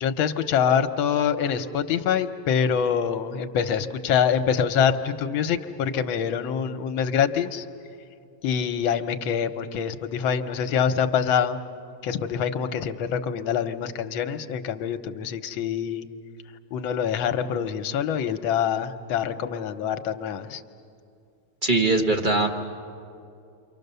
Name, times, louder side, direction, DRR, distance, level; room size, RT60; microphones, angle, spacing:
voice 1, 0.0-7.6 8.4-11.6 12.0-16.1 16.7-20.6, left 7 dB, 80° left, 9 dB, 1.6 m, -25 dB
voice 2, 21.6-22.5, right 2 dB, 30° right, 3 dB, 1.0 m, -21 dB
29.0 x 24.5 x 6.8 m, 2.5 s
omnidirectional pair, 2.2 m